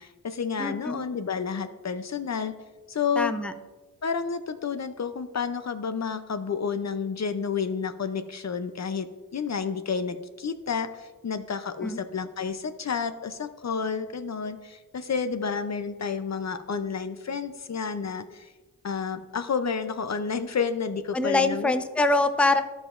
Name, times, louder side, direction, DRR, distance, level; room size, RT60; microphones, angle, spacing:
voice 1, 0.0-2.6 2.9-3.3 4.0-18.5 18.8-21.7, left 6 dB, 50° left, 10 dB, 0.6 m, -30 dB
voice 2, 0.6-1.0 3.2-3.5 11.8-12.0 21.1-22.6, left 2 dB, 5° left, 10 dB, 0.5 m, -24 dB
14.0 x 5.0 x 2.5 m, 1.2 s
cardioid pair, 50°, 35 cm